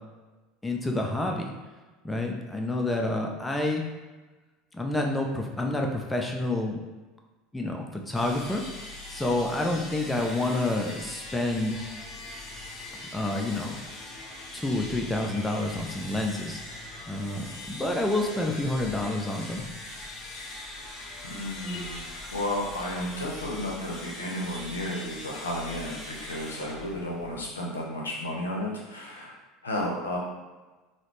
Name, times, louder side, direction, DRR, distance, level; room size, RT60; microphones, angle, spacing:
voice 1, 0.6-1.5 2.0-3.9 4.7-6.8 7.5-8.6 9.1-11.8 13.1-13.8 14.5-16.6 17.1-19.7, left 2 dB, 10° left, 1 dB, 0.5 m, -28 dB
sound 1, 8.1-27.6, left 2 dB, 40° left, 0.9 m, -41 dB
voice 2, 21.2-29.4 29.6-30.2, left 1 dB, 90° left, -2 dB, 0.6 m, -33 dB
3.9 x 2.0 x 3.2 m, 1.2 s
hypercardioid pair, 75°, 0 cm